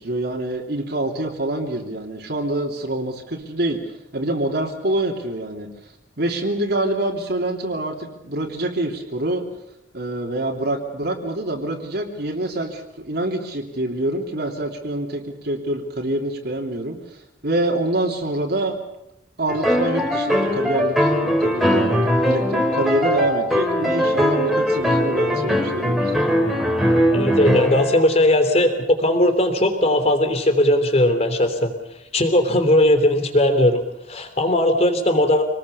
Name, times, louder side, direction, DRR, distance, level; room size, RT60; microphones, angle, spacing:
voice 1, 0.0-3.8 4.1-5.7 6.2-9.4 9.9-17.2 17.4-18.8 19.4-26.1, right 1 dB, 60° right, 0 dB, 3.1 m, -26 dB
sound 1, 19.5-28.0, equal, ahead, 3.1 m, -20 dB
voice 2, 27.1-31.7 32.1-33.8 34.1-35.4, left 1 dB, 35° left, 7 dB, 3.3 m, -18 dB
27.0 x 20.0 x 7.1 m, 0.86 s
head